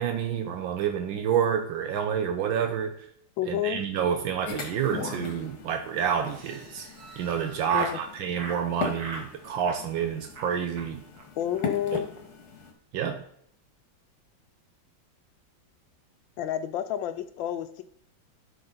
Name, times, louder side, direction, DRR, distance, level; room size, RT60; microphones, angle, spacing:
voice 1, 0.0-3.1 3.5-6.9 7.2-11.0 11.9-12.0 12.9-13.2, right 8 dB, 80° right, 6 dB, 1.5 m, -28 dB
voice 2, 3.4-3.8 7.7-8.0 11.4-12.1 16.4-17.8, left 10 dB, 80° left, 10 dB, 1.4 m, -30 dB
sound 1, 4.4-12.7, left 4 dB, 55° left, 1.9 m, -39 dB
Laughter, 6.2-8.0 8.4-8.6 8.9-9.3 9.6-10.1 10.3-10.5 10.8-10.9 11.1-11.2 11.5-11.6 11.9-12.2, right 3 dB, 55° right, 1.9 m, -40 dB
11.5 x 5.8 x 3.9 m, 0.67 s
omnidirectional pair, 2.1 m